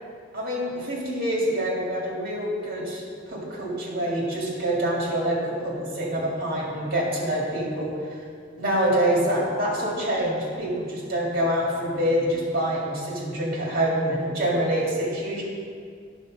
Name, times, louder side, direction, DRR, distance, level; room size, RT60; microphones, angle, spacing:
voice 1, 0.3-7.9 8.6-15.4, right 1 dB, 50° right, -3 dB, 2.1 m, -26 dB
9.8 x 4.3 x 6.3 m, 2.2 s
head